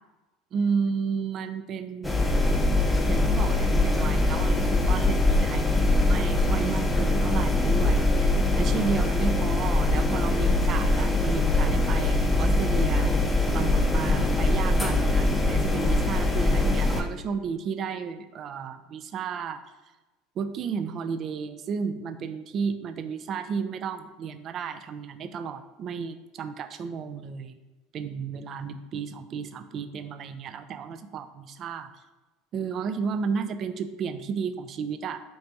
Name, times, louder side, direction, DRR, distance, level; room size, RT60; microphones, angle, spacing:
voice 1, 0.5-2.3 3.1-13.1 13.5-19.6 20.4-27.6 27.9-31.9 32.5-35.2, right 6 dB, 45° right, 10 dB, 0.3 m, -33 dB
sound 1, 2.0-17.0, left 2 dB, 10° left, 0.5 m, -23 dB
3.3 x 2.7 x 4.5 m, 1.1 s
hypercardioid pair, 80°, 0 cm